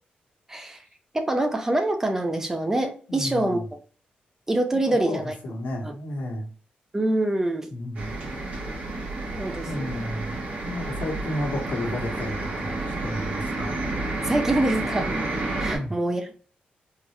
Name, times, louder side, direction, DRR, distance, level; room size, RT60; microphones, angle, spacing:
voice 1, 0.5-0.8 1.1-3.6 4.5-5.3 5.8-5.9 6.9-7.7 9.4-10.1 14.2-15.2 15.6-16.5, right 1 dB, 15° right, 6 dB, 0.4 m, -25 dB
voice 2, 3.1-3.6 4.9-6.5 7.7-8.1 9.6-13.8 15.7-15.9, left 1 dB, 75° left, -1 dB, 1.2 m, -32 dB
sound 1, 7.9-15.8, right 2 dB, 55° right, 1.3 m, -30 dB
3.7 x 2.0 x 3.1 m, 0.40 s
wide cardioid pair, 125°, 3 cm